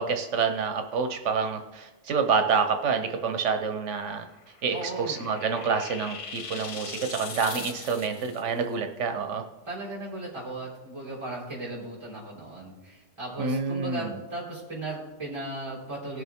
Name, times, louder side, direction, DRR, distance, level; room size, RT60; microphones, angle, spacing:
voice 1, 0.0-4.3 4.6-9.4 13.4-14.2, right 5 dB, 85° right, 6 dB, 1.2 m, -28 dB
sound 1, 4.3-8.4, left 5 dB, 40° left, 0.5 m, -40 dB
voice 2, 4.7-5.2 9.7-16.2, right 2 dB, 25° right, -6 dB, 3.8 m, -36 dB
18.0 x 6.7 x 3.6 m, 1.1 s
omnidirectional pair, 1.2 m